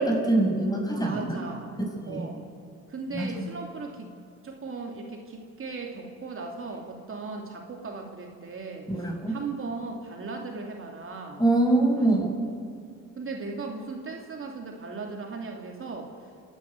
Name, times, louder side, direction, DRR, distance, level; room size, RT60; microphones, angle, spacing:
voice 1, 0.0-1.4 2.0-2.2 3.1-3.2 8.9-9.4 11.4-12.3, right 2 dB, 15° left, 1 dB, 6.2 m, -24 dB
voice 2, 0.9-1.7 2.0-2.4 2.9-4.1 4.4-11.4 12.0-12.1 13.2-16.1, right 4 dB, 45° right, 1 dB, 2.9 m, -37 dB
28.0 x 10.5 x 9.6 m, 2.2 s
cardioid pair, 90°, 30 cm